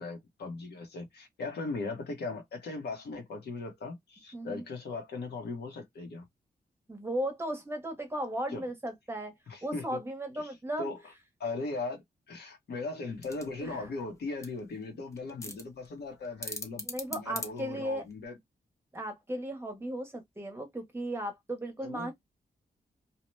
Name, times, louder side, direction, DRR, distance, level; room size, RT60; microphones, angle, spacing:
voice 1, 0.0-6.3 8.5-8.6 9.5-10.0 10.8-11.0 11.4-16.8 17.1-18.4 21.8-22.1, left 3 dB, 85° left, 1.0 m, -38 dB
voice 2, 4.3-4.6 6.9-9.3 9.6-10.9 13.6-13.9 16.8-18.1 18.9-22.1, right 1 dB, 15° right, 0.8 m, -36 dB
sound 1, 13.1-18.3, left 2 dB, 20° left, 0.6 m, -43 dB
2.8 x 2.1 x 3.0 m
wide cardioid pair, 160°, 17 cm